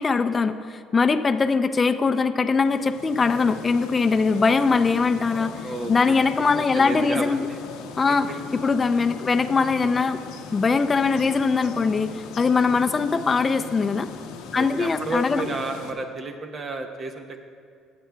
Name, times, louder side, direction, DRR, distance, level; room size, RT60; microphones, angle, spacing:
voice 1, 0.0-7.5 8.0-8.3 8.6-10.2 10.5-14.1 14.5-15.5, left 4 dB, 30° left, 8 dB, 0.4 m, -22 dB
sound 1, 2.5-15.9, left 5 dB, 85° left, 0.8 m, -39 dB
voice 2, 5.6-6.1 6.5-7.6 14.5-17.4, right 2 dB, 45° right, 5 dB, 0.8 m, -31 dB
18.5 x 7.6 x 2.3 m, 2.3 s
supercardioid pair, 80°, 0 cm